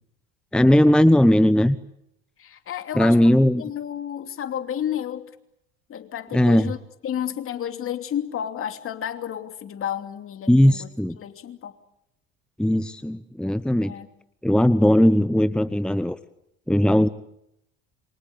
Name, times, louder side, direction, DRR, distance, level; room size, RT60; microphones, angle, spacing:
voice 1, 0.5-1.8 3.0-3.6 6.3-6.7 10.5-11.2 12.6-13.9 14.4-16.2 16.7-17.1, left 1 dB, 5° left, 14 dB, 1.0 m, -18 dB
voice 2, 2.4-5.3 5.9-6.8 7.0-10.9 11.2-11.7 13.8-14.1, left 10 dB, 45° left, 7 dB, 2.9 m, -31 dB
28.0 x 24.5 x 8.4 m, 0.80 s
hypercardioid pair, 75°, 31 cm